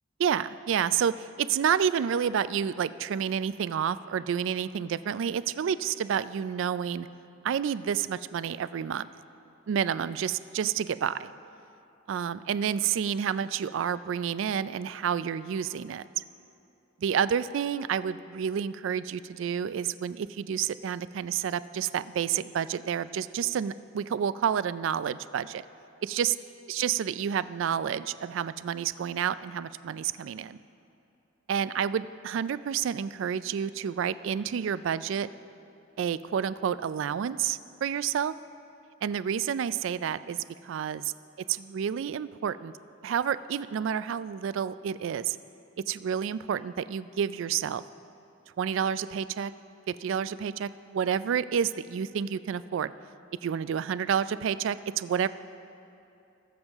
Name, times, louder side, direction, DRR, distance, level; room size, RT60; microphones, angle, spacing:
voice 1, 0.2-7.1 7.4-9.1 9.7-11.3 12.1-16.2 17.0-25.6 26.0-26.3 26.7-30.6 31.5-35.3 36.0-38.3 39.0-40.4 40.6-41.0 41.6-42.7 43.0-45.4 45.9-47.8 48.6-49.5 49.9-52.9 53.4-55.3, right 8 dB, 65° right, 15 dB, 0.3 m, -29 dB
20.0 x 7.3 x 3.5 m, 2.7 s
head